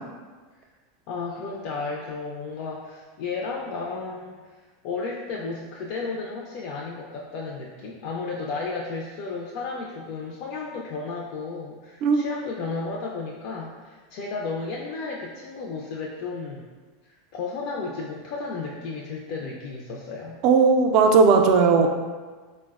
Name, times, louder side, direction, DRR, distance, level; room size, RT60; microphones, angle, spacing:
voice 1, 1.1-4.4 4.8-16.7 17.0-20.4, left 4 dB, 55° left, -3 dB, 0.3 m, -33 dB
voice 2, 20.4-21.9, right 5 dB, 50° right, 4 dB, 0.3 m, -17 dB
3.8 x 2.1 x 2.3 m, 1.4 s
supercardioid pair, 130°, 0 cm